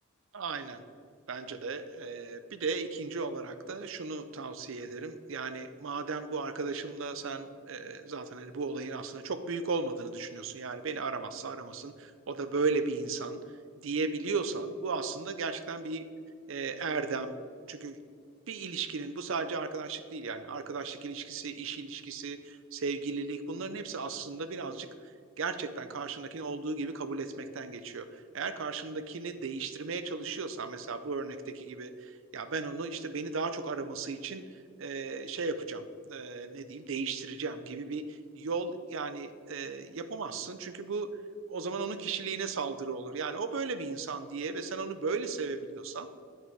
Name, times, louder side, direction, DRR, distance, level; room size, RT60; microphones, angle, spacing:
voice 1, 0.3-0.8 1.3-13.4 13.8-16.0 16.5-17.3 17.7-18.0 18.5-24.9 25.4-34.4 34.8-41.1 41.5-46.1, right 4 dB, 65° right, 10 dB, 0.6 m, -35 dB
8.9 x 5.6 x 4.6 m, 2.1 s
head